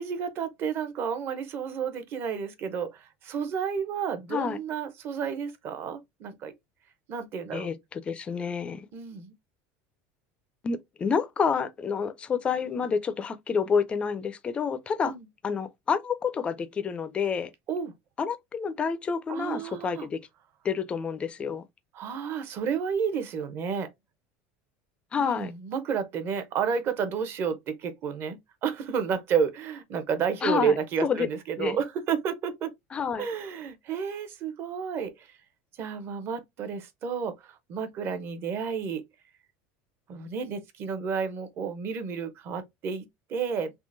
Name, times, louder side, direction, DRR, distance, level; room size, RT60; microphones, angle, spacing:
voice 1, 0.0-6.5 7.1-7.7 8.9-9.3 15.0-15.2 17.7-17.9 19.3-20.1 21.9-23.9 25.2-32.7 33.2-35.3 35.8-39.0 40.1-43.7, right 6 dB, 35° right, 0.7 m, -31 dB
voice 2, 7.5-8.9 10.6-15.2 15.4-17.5 18.2-20.2 20.6-21.6 25.1-25.5 30.4-30.7 31.0-31.3 31.6-31.8 32.9-33.3, left 6 dB, 20° left, 0.4 m, -28 dB
3.6 x 2.9 x 2.5 m
cardioid pair, 165°, 6 cm